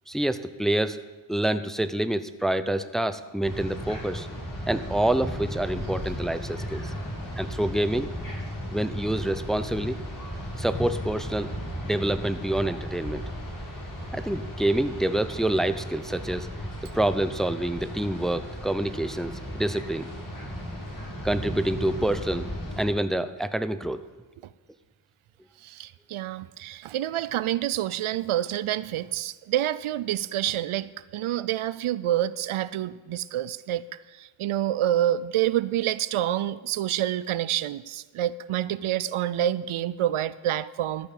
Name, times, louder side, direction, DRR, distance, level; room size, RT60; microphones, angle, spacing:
voice 1, 0.1-1.0 1.3-4.3 4.7-6.8 7.4-8.1 8.7-10.0 10.6-11.5 11.8-13.2 14.1-16.5 16.9-20.1 21.2-22.5 22.8-24.0, right 1 dB, ahead, 11 dB, 0.6 m, -27 dB
sound 1, 3.4-22.8, equal, 40° left, 4.3 m, -35 dB
voice 2, 25.6-33.8 34.1-41.1, right 12 dB, 80° right, 17 dB, 0.5 m, -28 dB
13.5 x 5.7 x 8.3 m, 1.3 s
cardioid pair, 55°, 49 cm